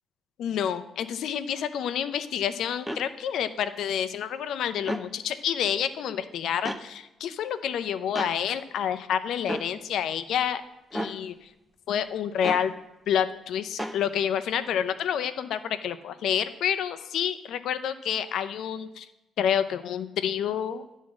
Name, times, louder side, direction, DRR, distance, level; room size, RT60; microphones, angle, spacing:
voice 1, 0.4-10.6 10.9-11.5 11.9-12.7 13.1-19.1 19.4-20.8, left 9 dB, 75° left, 11 dB, 0.6 m, -28 dB
sound 1, 2.9-3.0 4.8-5.1 6.7-6.8 8.2-8.4 9.5-9.7 10.9-11.2 12.4-12.7 13.8-14.0, equal, 5° right, 0.6 m, -32 dB
10.5 x 3.7 x 7.3 m, 0.94 s
cardioid pair, 90°, 0 cm